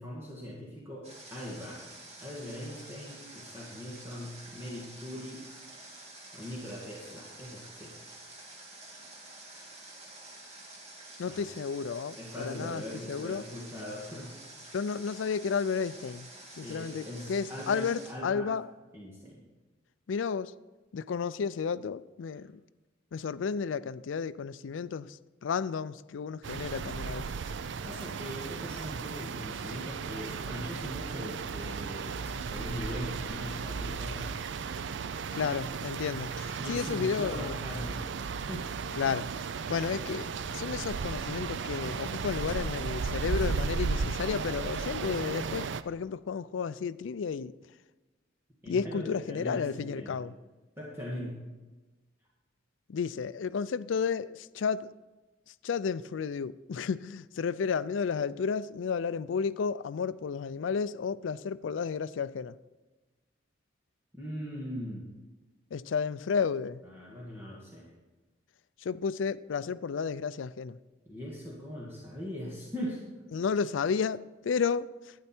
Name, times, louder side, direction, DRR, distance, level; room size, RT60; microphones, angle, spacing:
voice 1, 0.0-1.9 2.2-5.4 6.3-7.9 11.3-11.5 12.2-14.3 16.5-18.5 18.9-19.4 27.8-34.3 36.6-38.8 48.6-50.2 50.8-51.4 64.1-65.0 66.8-67.9 71.0-73.0, equal, 15° right, 1.8 m, -41 dB
Water, 1.0-18.1, right 2 dB, 35° right, 2.2 m, -49 dB
voice 2, 11.2-13.4 14.7-16.3 16.6-18.6 20.1-20.5 20.9-22.5 23.1-27.3 35.3-37.6 39.0-39.3 39.7-47.5 48.7-50.3 52.9-54.9 55.6-62.6 65.7-66.8 68.8-70.8 73.3-75.1, left 6 dB, 75° left, 0.4 m, -32 dB
sound 1, 26.4-45.8, right 5 dB, 70° right, 0.4 m, -35 dB
12.0 x 9.4 x 4.4 m
head